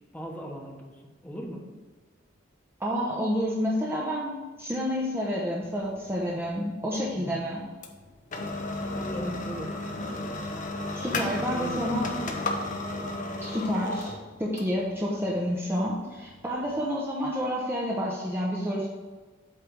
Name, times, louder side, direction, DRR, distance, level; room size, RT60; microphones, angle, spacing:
voice 1, 0.1-1.6 7.1-7.4 8.9-9.9 11.1-12.3, equal, 10° left, 0 dB, 1.1 m, -38 dB
voice 2, 2.8-7.6 10.9-12.1 13.4-18.9, equal, 10° right, -4 dB, 0.8 m, -29 dB
sound 1, 5.6-16.8, left 2 dB, 40° left, 0.8 m, -35 dB
8.1 x 3.4 x 6.0 m, 1.4 s
head